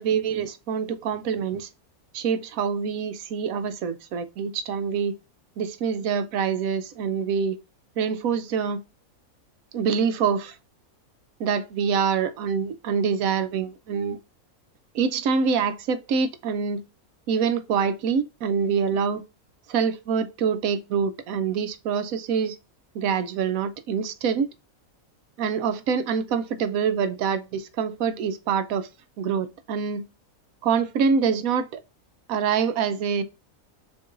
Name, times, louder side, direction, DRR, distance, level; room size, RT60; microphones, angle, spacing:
voice 1, 0.0-1.7 2.1-5.2 5.6-7.6 8.0-8.8 9.7-10.5 11.4-14.2 14.9-16.8 17.3-19.2 19.7-22.6 22.9-24.5 25.4-28.9 29.2-30.0 30.6-31.8 32.3-33.2, right 6 dB, 75° right, 1.0 m, -25 dB
6.5 x 3.1 x 2.5 m
omnidirectional pair, 1.5 m